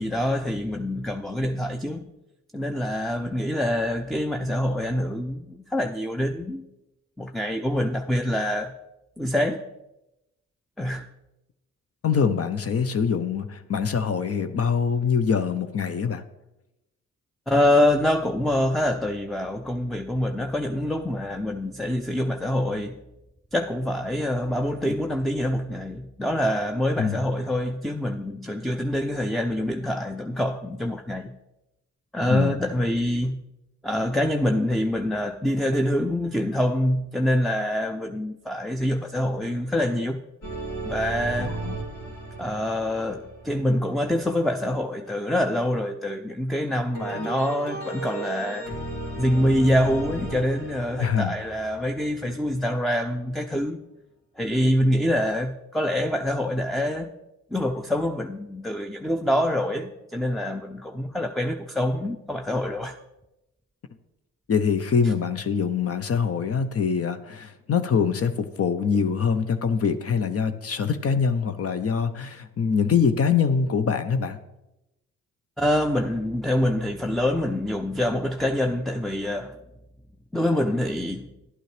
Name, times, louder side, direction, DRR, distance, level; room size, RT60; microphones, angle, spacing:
voice 1, 0.0-2.1 2.5-6.6 7.2-8.7 9.2-9.6 10.8-11.0 17.5-23.0 23.5-31.3 32.1-33.4 33.8-40.2 40.8-41.5 42.4-48.7 49.2-53.8 54.4-57.1 57.5-63.0 75.6-79.6 80.3-81.3, left 1 dB, ahead, 0.5 m, -25 dB
voice 2, 12.0-16.2 24.9-25.0 27.0-27.2 32.3-32.6 41.4-41.8 51.0-51.4 64.5-74.4, left 6 dB, 45° left, 0.8 m, -24 dB
sound 1, 40.4-44.5 46.9-52.6, right 2 dB, 75° left, 3.2 m, -35 dB
11.0 x 9.0 x 3.3 m
supercardioid pair, 55°, 32 cm